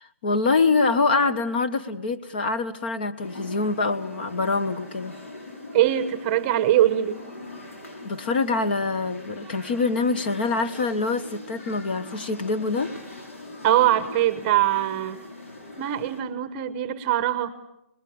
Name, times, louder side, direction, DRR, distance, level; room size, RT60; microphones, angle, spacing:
voice 1, 0.2-5.1 8.0-12.9, left 3 dB, 40° left, 10 dB, 1.4 m, -25 dB
sound 1, 3.2-16.2, left 1 dB, 70° left, 6.4 m, -41 dB
voice 2, 5.7-7.2 13.6-15.2 15.8-17.5, right 12 dB, 20° right, 12 dB, 1.0 m, -22 dB
30.0 x 20.5 x 7.2 m, 0.87 s
hypercardioid pair, 170°, 8 cm